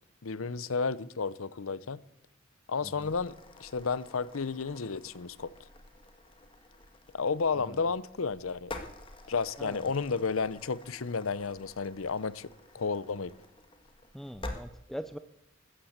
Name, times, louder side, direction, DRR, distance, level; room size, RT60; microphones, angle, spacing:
voice 1, 0.2-2.0 2.7-3.3 3.6-5.5 7.1-8.7 9.3-12.5 12.7-13.3, left 4 dB, 75° left, 18 dB, 0.7 m, -32 dB
voice 2, 2.8-3.1 7.5-7.8 9.6-9.9 14.1-15.2, equal, ahead, 11 dB, 0.6 m, -42 dB
sound 1, 3.0-14.6, left 2 dB, 25° left, 1.9 m, -48 dB
14.0 x 13.0 x 8.0 m, 0.83 s
head